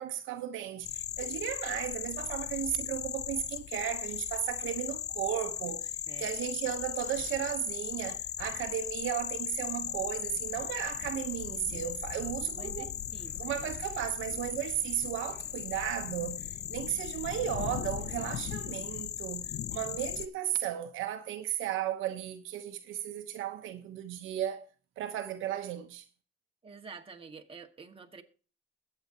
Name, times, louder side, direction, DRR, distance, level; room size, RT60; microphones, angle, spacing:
voice 1, 0.0-12.9 13.4-24.7 25.0-26.0, right 11 dB, 90° right, 1.0 m, -35 dB
sound 1, 0.8-20.3, left 10 dB, 55° left, 0.6 m, -37 dB
voice 2, 12.5-13.7 14.0-14.4 26.6-28.2, right 5 dB, 30° right, 1.7 m, -49 dB
21.5 x 8.0 x 2.9 m
cardioid pair, 90°, 20 cm